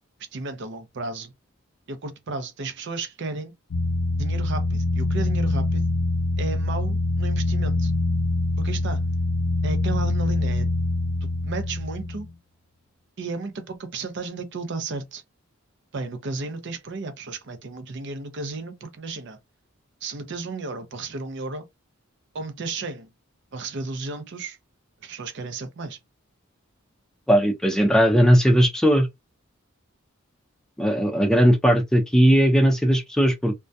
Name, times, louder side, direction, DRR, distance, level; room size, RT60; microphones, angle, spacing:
voice 1, 0.3-1.3 1.9-3.5 4.2-5.8 6.4-7.9 8.6-9.0 9.6-10.7 11.2-12.3 13.2-15.2 15.9-19.4 20.0-21.7 22.3-23.1 23.5-24.6 25.0-26.0, right 3 dB, 60° right, 0.5 m, -33 dB
sound 1, 3.7-12.3, left 2 dB, 85° left, 0.7 m, -24 dB
voice 2, 27.3-29.1 30.8-33.5, equal, 5° left, 0.4 m, -18 dB
2.2 x 2.2 x 2.6 m
head